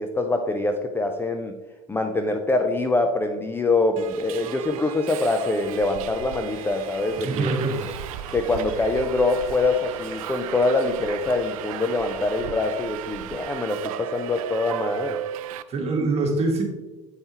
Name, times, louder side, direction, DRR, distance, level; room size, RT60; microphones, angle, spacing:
voice 1, 0.0-1.5 1.9-7.6 8.3-15.2, left 2 dB, 10° left, 5 dB, 0.5 m, -24 dB
Subway metro underground, 4.0-15.6, right 11 dB, 75° right, 0.4 m, -36 dB
sound 1, 6.4-12.4, left 3 dB, 65° left, 1.5 m, -46 dB
voice 2, 7.2-7.9 15.7-16.6, right 3 dB, 35° right, 1 dB, 1.7 m, -24 dB
8.0 x 5.3 x 3.0 m, 1.1 s
hypercardioid pair, 90°, 18 cm